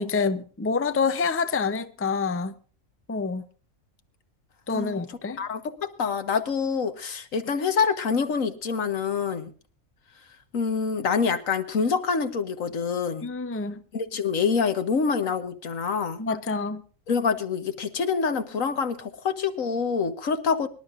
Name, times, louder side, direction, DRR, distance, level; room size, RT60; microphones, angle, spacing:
voice 1, 0.0-2.5 3.1-3.4 4.7-5.4 13.2-13.8 16.2-16.8, left 4 dB, 15° left, 0.6 m, -27 dB
voice 2, 5.4-9.5 10.5-13.3 13.9-16.2 17.1-20.7, left 5 dB, 80° left, 1.7 m, -26 dB
25.0 x 11.5 x 2.5 m
omnidirectional pair, 1.4 m